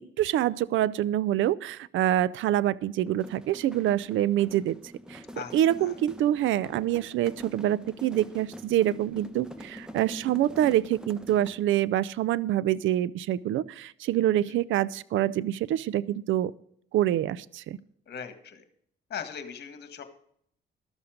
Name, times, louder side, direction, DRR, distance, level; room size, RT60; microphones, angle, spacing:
voice 1, 0.2-4.8 5.1-5.2 5.5-16.5 16.9-17.8, right 12 dB, 80° right, 20 dB, 0.5 m, -26 dB
sound 1, 3.1-11.7, equal, 5° right, 1.0 m, -45 dB
voice 2, 18.1-18.6 19.1-20.0, left 7 dB, 55° left, 8 dB, 1.8 m, -39 dB
13.0 x 7.1 x 5.1 m, 0.67 s
cardioid pair, 90°, 20 cm